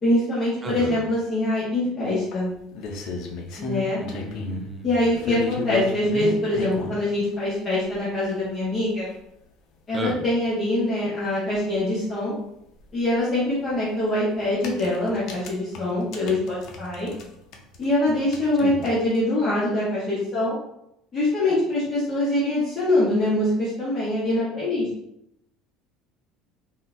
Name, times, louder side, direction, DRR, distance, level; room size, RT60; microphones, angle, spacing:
voice 1, 0.0-2.5 3.6-4.0 4.8-9.1 9.9-12.3 12.9-17.1 17.8-20.5 21.1-24.9, left 1 dB, 25° left, -10 dB, 0.9 m, -24 dB
voice 2, 0.6-1.1 4.0-5.3 9.9-10.2 18.6-18.8, right 2 dB, 15° right, 4 dB, 0.4 m, -33 dB
sound 1, 2.3-4.7 5.1-7.0 7.9-8.0 8.4-8.5 8.8-8.9 9.1-9.2 11.2-11.3 11.5-11.6 13.6-13.7 14.4-17.3 17.5-19.2, left 4 dB, 50° left, 0.5 m, -33 dB
3.8 x 2.2 x 2.5 m, 0.79 s
cardioid pair, 160°, 0 cm